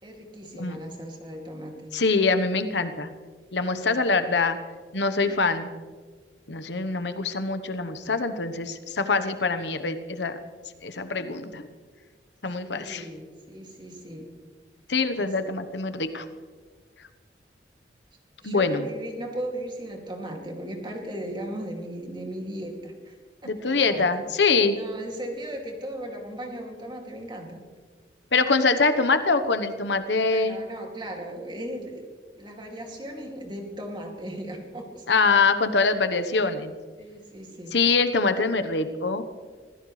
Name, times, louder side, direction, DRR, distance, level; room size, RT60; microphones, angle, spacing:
voice 1, 0.0-2.0 4.2-4.4 12.6-14.3 15.2-15.3 18.4-23.1 23.4-24.1 24.7-27.6 30.3-32.1 32.3-35.0 37.0-37.7, right 1 dB, 25° right, 1 dB, 2.6 m, -37 dB
voice 2, 1.9-3.1 3.5-4.6 4.9-5.7 6.5-10.4 10.8-11.6 12.4-13.0 14.9-16.2 18.4-18.8 23.4-24.8 28.3-30.6 35.1-36.7 37.7-39.2, left 4 dB, 85° left, 10 dB, 1.1 m, -24 dB
25.0 x 16.0 x 3.3 m, 1.5 s
head